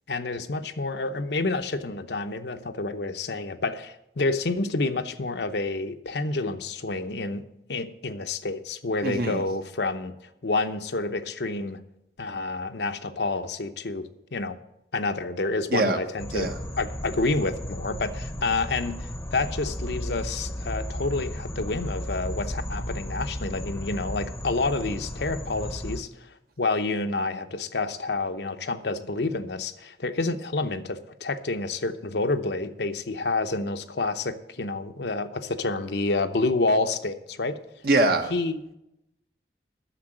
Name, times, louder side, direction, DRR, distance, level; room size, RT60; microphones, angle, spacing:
voice 1, 0.1-7.4 7.7-10.1 10.4-11.8 12.2-14.6 14.9-16.5 16.8-26.3 26.6-37.6 38.3-38.6, left 3 dB, 70° left, 0.8 m, -28 dB
voice 2, 9.0-9.4 15.7-16.0 16.3-16.5 37.8-38.3, right 2 dB, 55° right, 1.0 m, -23 dB
sound 1, 16.2-26.0, equal, 15° left, 0.8 m, -34 dB
10.0 x 6.9 x 8.9 m
head